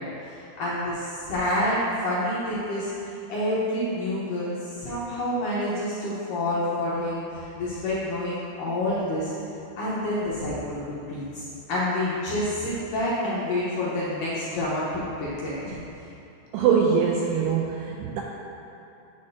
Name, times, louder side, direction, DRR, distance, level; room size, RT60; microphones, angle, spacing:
voice 1, 0.0-2.9 3.3-9.3 9.8-15.8, left 1 dB, 65° left, -9 dB, 2.2 m, -28 dB
voice 2, 16.5-18.2, right 6 dB, 85° right, -1 dB, 2.4 m, -23 dB
9.5 x 8.7 x 2.8 m, 2.9 s
omnidirectional pair, 5.2 m